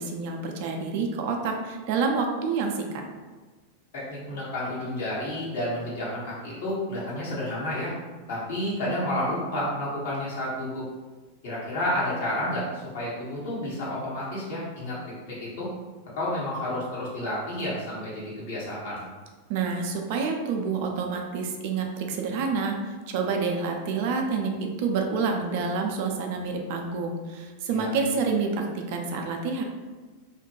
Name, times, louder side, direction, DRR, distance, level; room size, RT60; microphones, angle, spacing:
voice 1, 0.0-3.0 19.5-29.6, right 4 dB, 50° right, 2 dB, 0.3 m, -28 dB
voice 2, 3.9-7.9 8.3-10.8 11.4-15.7 16.2-19.1 27.7-27.9, left 1 dB, 55° left, -8 dB, 1.2 m, -30 dB
2.5 x 2.1 x 3.0 m, 1.3 s
figure-of-eight pair, 90°, 0 cm